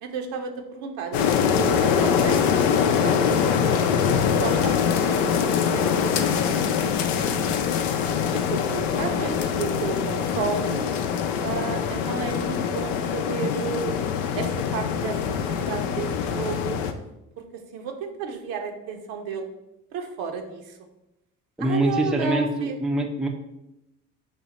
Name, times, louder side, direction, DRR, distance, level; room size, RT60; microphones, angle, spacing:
voice 1, 0.0-2.6 2.9-3.8 4.3-7.6 8.3-10.8 11.4-14.0 14.4-16.8 17.4-17.5 17.7-19.5 19.9-20.7 21.6-22.8, right 5 dB, 70° right, 4 dB, 0.8 m, -32 dB
sound 1, 1.1-16.9, left 7 dB, 80° left, 0.5 m, -23 dB
voice 2, 21.6-23.3, right 1 dB, ahead, 2 dB, 0.4 m, -24 dB
5.5 x 2.1 x 4.0 m, 0.89 s
hypercardioid pair, 65°, 38 cm